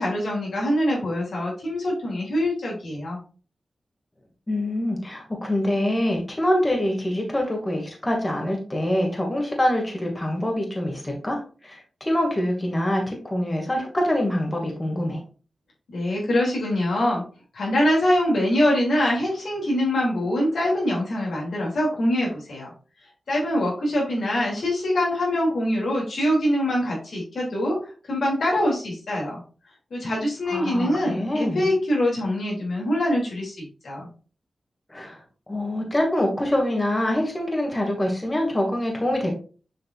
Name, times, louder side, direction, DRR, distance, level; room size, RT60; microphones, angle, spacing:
voice 1, 0.0-3.2 15.9-17.2 17.5-22.7 23.3-27.8 28.1-29.4 29.9-34.1, left 1 dB, 80° left, -3 dB, 2.9 m, -24 dB
voice 2, 4.5-15.2 30.5-31.7 34.9-35.2 35.5-39.3, left 1 dB, 25° left, 1 dB, 2.3 m, -25 dB
7.4 x 5.2 x 2.5 m, 0.38 s
cardioid pair, 45°, 0 cm